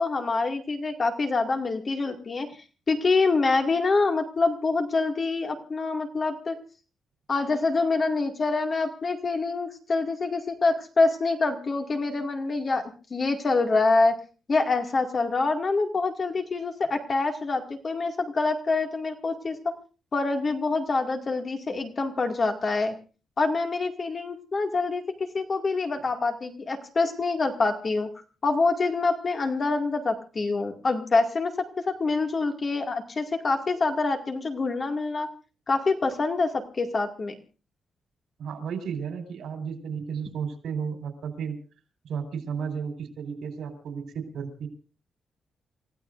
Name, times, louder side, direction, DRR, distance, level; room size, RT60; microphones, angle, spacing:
voice 1, 0.0-2.5 2.9-6.6 7.3-14.2 14.5-19.7 20.1-22.9 23.4-28.1 28.4-31.5 31.9-35.3 35.7-37.3, left 3 dB, 35° left, 4 dB, 2.2 m, -26 dB
voice 2, 38.4-41.6 42.0-44.7, right 6 dB, 85° right, 5 dB, 4.4 m, -33 dB
29.0 x 15.5 x 2.6 m, 0.35 s
wide cardioid pair, 150°, 0 cm